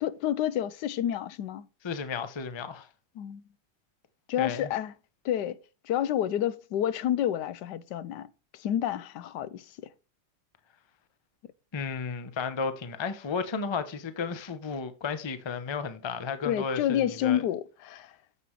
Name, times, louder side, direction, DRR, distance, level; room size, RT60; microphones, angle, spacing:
voice 1, 0.0-1.7 3.2-3.4 4.3-4.9 5.2-5.6 5.8-8.3 8.5-9.7 16.4-18.1, left 11 dB, 90° left, 1.2 m, -29 dB
voice 2, 1.8-2.9 4.4-4.7 11.7-17.4, left 5 dB, 35° left, 0.4 m, -33 dB
9.8 x 7.6 x 3.1 m
omnidirectional pair, 1.8 m